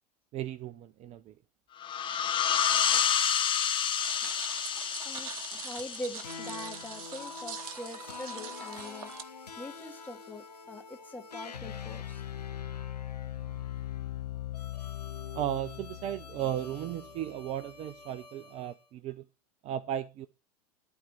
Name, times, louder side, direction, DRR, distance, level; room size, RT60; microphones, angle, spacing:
voice 1, 0.3-1.4 15.3-19.2 19.6-20.3, right 11 dB, 30° right, 0.6 m, -35 dB
sound 1, 1.8-7.2, left 8 dB, 25° left, 1.0 m, -29 dB
sound 2, 4.0-9.2, right 8 dB, 60° right, 1.1 m, -43 dB
voice 2, 5.1-12.2, left 1 dB, 10° left, 1.8 m, -43 dB
sound 3, 6.2-18.7, left 9 dB, 80° left, 0.8 m, -42 dB
11.5 x 4.4 x 7.1 m
figure-of-eight pair, 85°, 20 cm